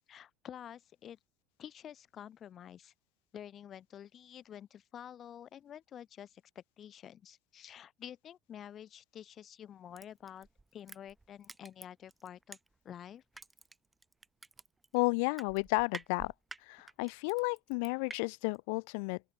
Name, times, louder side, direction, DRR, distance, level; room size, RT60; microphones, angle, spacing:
voice 1, 0.1-1.2 1.6-2.9 3.3-10.5 10.7-12.6 12.8-13.2, left 10 dB, 40° left, 3.7 m, -49 dB
Crushing, 10.0-13.0 13.3-18.2 18.5-18.6, right 3 dB, 15° right, 6.3 m, -49 dB
voice 2, 14.9-16.3 16.6-19.2, left 33 dB, 75° left, 0.4 m, -32 dB
open air
supercardioid pair, 110°, 0 cm